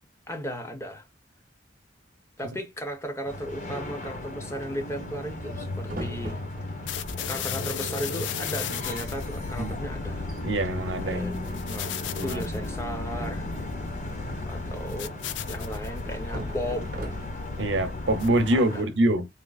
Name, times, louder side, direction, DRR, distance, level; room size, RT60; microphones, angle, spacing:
voice 1, 0.3-1.1 2.4-6.4 7.2-10.2 11.0-13.5 14.5-15.2 15.5-16.9 18.5-18.8, equal, 15° left, 0.9 m, -35 dB
sound 1, 3.3-18.8, left 1 dB, 45° left, 1.6 m, -36 dB
sound 2, 5.8-7.0 7.9-8.0 8.2-8.5 8.9-9.1 9.6-9.7 10.1-10.4 11.5-12.0 14.0-15.0 16.0-17.6, right 1 dB, 50° right, 0.9 m, -40 dB
sound 3, 6.9-18.7, left 5 dB, 85° left, 0.5 m, -36 dB
voice 2, 10.4-11.3 12.1-12.4 17.6-19.3, right 1 dB, 90° right, 0.8 m, -25 dB
3.6 x 2.8 x 2.4 m
head